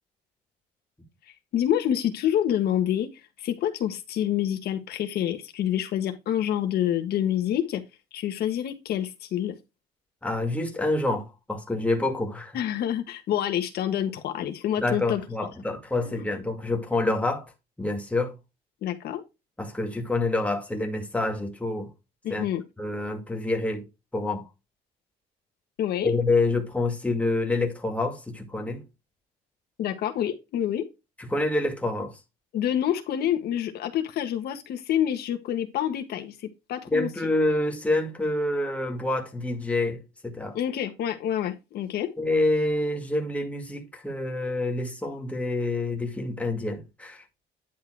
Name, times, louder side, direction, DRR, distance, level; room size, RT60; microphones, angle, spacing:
voice 1, 1.3-7.8 8.1-9.6 12.5-15.2 16.0-16.2 18.8-19.2 22.2-22.6 25.8-26.1 29.8-30.9 32.5-37.3 40.5-42.1, left 10 dB, 70° left, 1.4 m, -27 dB
voice 2, 10.2-12.6 14.8-17.5 17.8-18.3 19.6-21.9 22.3-22.5 22.8-23.8 24.1-24.4 26.0-28.8 31.2-32.1 36.9-40.6 42.2-47.2, left 2 dB, 10° left, 2.3 m, -27 dB
10.5 x 3.8 x 4.7 m
cardioid pair, 110°, 17 cm